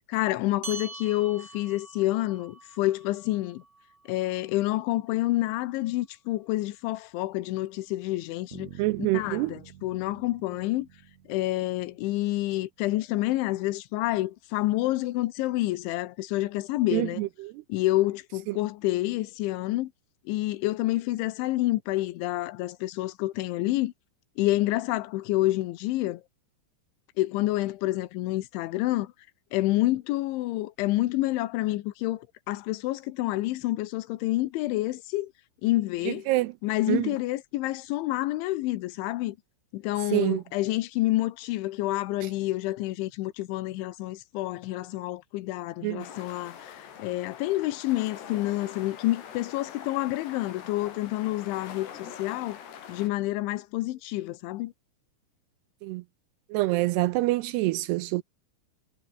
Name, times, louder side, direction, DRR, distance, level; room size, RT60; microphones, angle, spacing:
voice 1, 0.1-3.6 4.1-8.7 9.1-10.9 11.3-17.2 17.7-19.9 20.3-23.9 24.4-26.2 27.2-29.1 29.5-35.3 35.6-36.3 36.6-39.4 39.7-52.6 52.9-54.7, left 17 dB, 90° left, 3.4 m, -28 dB
sound 1, 0.6-5.4, right 3 dB, 35° right, 8.4 m, -45 dB
Bass guitar, 8.5-12.4, right 11 dB, 65° right, 1.8 m, -49 dB
voice 2, 8.8-9.5 16.9-17.5 18.5-18.6 36.1-36.5 36.9-37.1 40.1-40.4 45.8-46.1 55.8-56.0 56.5-58.2, right 19 dB, 80° right, 2.4 m, -26 dB
sound 2, 46.0-53.1, left 8 dB, 65° left, 5.3 m, -44 dB
omnidirectional pair, 5.3 m